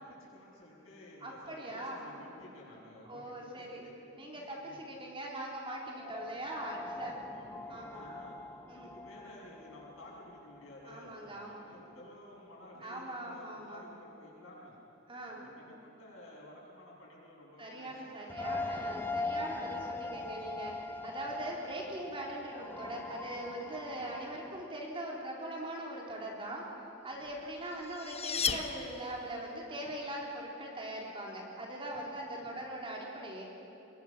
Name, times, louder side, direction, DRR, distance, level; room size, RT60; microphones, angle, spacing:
voice 1, 0.1-3.9 4.3-4.8 6.6-6.7 6.9-8.4 8.7-14.8 15.2-19.0 23.9-24.1 27.2-27.3 32.3-32.6, left 1 dB, 85° left, -4 dB, 7.9 m, -53 dB
voice 2, 1.2-2.0 3.1-3.8 4.2-7.2 7.7-8.0 8.7-8.9 10.8-11.6 12.8-13.8 15.1-15.4 17.6-20.8 21.0-26.7 27.0-33.5, right 1 dB, 25° right, -2 dB, 3.7 m, -41 dB
sound 1, 6.0-11.6 11.9-12.0 18.3-24.7, left 2 dB, 10° left, 0.6 m, -42 dB
sound 2, 27.4-29.4, left 6 dB, 30° left, 1.0 m, -35 dB
26.5 x 22.0 x 6.3 m, 3.0 s
head